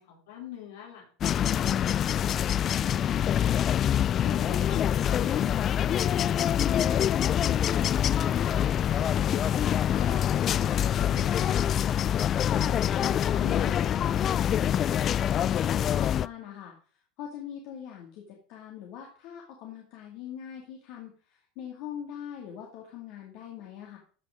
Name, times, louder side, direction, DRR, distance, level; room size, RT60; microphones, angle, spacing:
voice 1, 0.0-1.6 2.1-3.5 4.2-4.9 5.2-8.6 8.9-11.8, left 8 dB, 80° left, -1 dB, 4.0 m, -45 dB
sound 1, 1.2-16.3, left 10 dB, 40° left, 0.3 m, -25 dB
voice 2, 12.4-16.7 17.2-24.0, left 9 dB, 65° left, 0 dB, 2.2 m, -42 dB
14.0 x 5.3 x 5.0 m, 0.44 s
hypercardioid pair, 90°, 0 cm